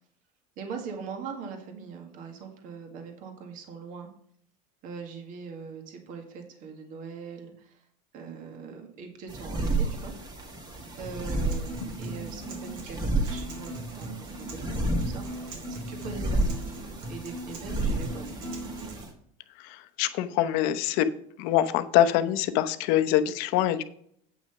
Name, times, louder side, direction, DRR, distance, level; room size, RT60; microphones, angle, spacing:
voice 1, 0.6-4.1 4.8-7.9 8.1-10.1 10.5-10.7 11.0-16.6 17.1-18.5, right 5 dB, 45° right, 4 dB, 1.9 m, -41 dB
sound 1, 9.3-19.1, right 2 dB, 20° right, 2.0 m, -32 dB
Acoustic guitar, 11.0-19.0, right 1 dB, 80° right, 3.1 m, -39 dB
voice 2, 19.6-21.1 21.4-23.8, left 12 dB, 60° left, 10 dB, 0.8 m, -24 dB
8.7 x 6.0 x 5.7 m, 0.65 s
cardioid pair, 155°, 18 cm